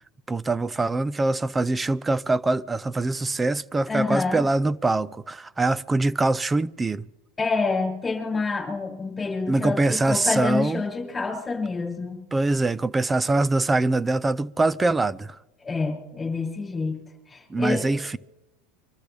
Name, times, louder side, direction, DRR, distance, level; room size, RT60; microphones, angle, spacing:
voice 1, 0.3-7.1 9.5-10.8 12.3-15.4 17.5-18.2, right 2 dB, 15° right, 0.5 m, -23 dB
voice 2, 3.9-4.4 7.4-12.2 15.6-17.0 17.3-17.8, left 4 dB, 15° left, 6.3 m, -27 dB
25.5 x 13.5 x 3.4 m
supercardioid pair, 120°, 0 cm